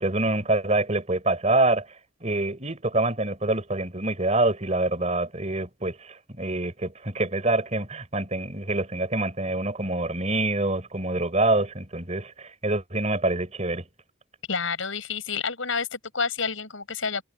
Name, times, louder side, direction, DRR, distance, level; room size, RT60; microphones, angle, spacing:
voice 1, 0.0-1.9 2.2-13.8, right 2 dB, 35° right, 4.5 m, -26 dB
voice 2, 14.5-17.2, left 5 dB, 75° left, 5.6 m, -29 dB
head